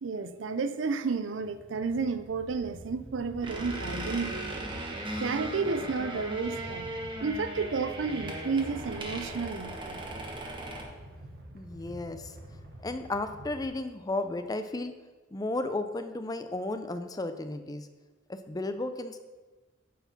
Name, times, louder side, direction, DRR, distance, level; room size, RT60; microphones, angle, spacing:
voice 1, 0.0-4.4 5.2-6.8 7.2-10.0, right 4 dB, 85° right, 12 dB, 0.5 m, -31 dB
sound 1, 1.4-13.7, right 1 dB, 55° right, 1.1 m, -47 dB
sound 2, 3.4-10.8, right 1 dB, 25° right, 1.2 m, -38 dB
voice 2, 11.5-12.3 12.8-15.0 15.3-17.9 18.3-19.2, left 2 dB, 20° left, 9 dB, 0.5 m, -34 dB
9.1 x 4.7 x 5.8 m, 1.3 s
head